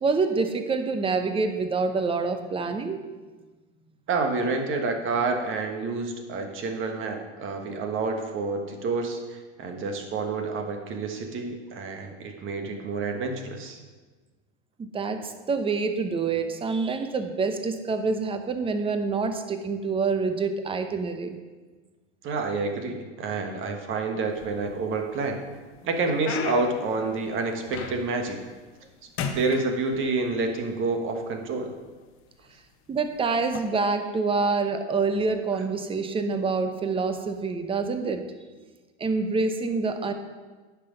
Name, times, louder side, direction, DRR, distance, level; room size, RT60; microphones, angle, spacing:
voice 1, 0.0-3.0 14.8-21.4 32.9-38.2 39.0-40.1, right 4 dB, 15° right, 7 dB, 0.8 m, -26 dB
voice 2, 4.1-13.8 22.2-25.4 25.8-28.4 29.3-31.7, right 3 dB, 35° right, 4 dB, 1.4 m, -28 dB
sound 1, 24.3-25.0 25.5-28.3 28.6-28.9 29.2-30.4 31.2-31.3 32.0-32.2 33.4-33.6, left 6 dB, 35° left, 1.0 m, -35 dB
10.0 x 6.0 x 5.1 m, 1.3 s
hypercardioid pair, 115°, 36 cm